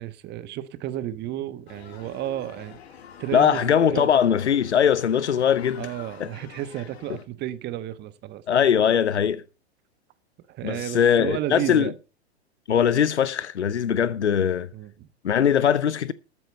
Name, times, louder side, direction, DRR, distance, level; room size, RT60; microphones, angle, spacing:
voice 1, 0.0-2.8 3.2-4.1 5.8-8.4 10.5-11.9 14.7-15.1, right 12 dB, 30° right, 1.2 m, -32 dB
sound 1, 1.7-7.3, left 7 dB, 70° left, 2.0 m, -47 dB
voice 2, 3.3-5.9 6.2-6.3 8.5-9.4 10.6-11.9 12.7-14.7 15.2-16.1, left 8 dB, 90° left, 0.7 m, -21 dB
13.5 x 7.9 x 5.4 m
hypercardioid pair, 110°, 33 cm